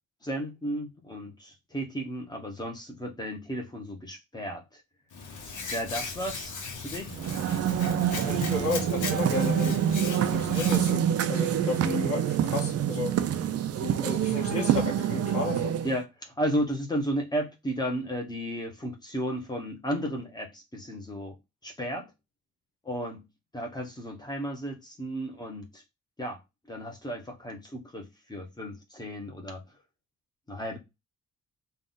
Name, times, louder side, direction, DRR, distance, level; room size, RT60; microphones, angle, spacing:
voice 1, 0.2-4.8 5.7-6.5 6.8-7.1 15.8-21.3 21.6-22.1 22.8-23.2 23.5-25.8 26.2-26.4 26.7-29.6 30.5-30.8, equal, 15° left, 0.8 m, -33 dB
Hands, 5.1-10.9, left 4 dB, 70° left, 1.1 m, -37 dB
sound 1, 7.1-16.0, right 9 dB, 50° right, 0.4 m, -26 dB
voice 2, 8.1-13.2 13.8-15.8, left 3 dB, 45° left, 1.6 m, -33 dB
3.8 x 2.3 x 3.9 m
wide cardioid pair, 175°, 32 cm